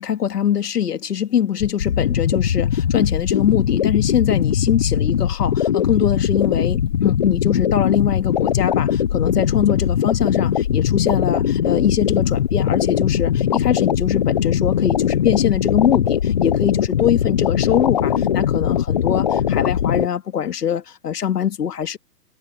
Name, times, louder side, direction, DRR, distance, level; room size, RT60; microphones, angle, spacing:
voice 1, 0.0-22.0, left 9 dB, 70° left, 2.2 m, -22 dB
sound 1, 1.6-20.1, left 9 dB, 25° left, 0.7 m, -20 dB
hypercardioid pair, 155°, 50 cm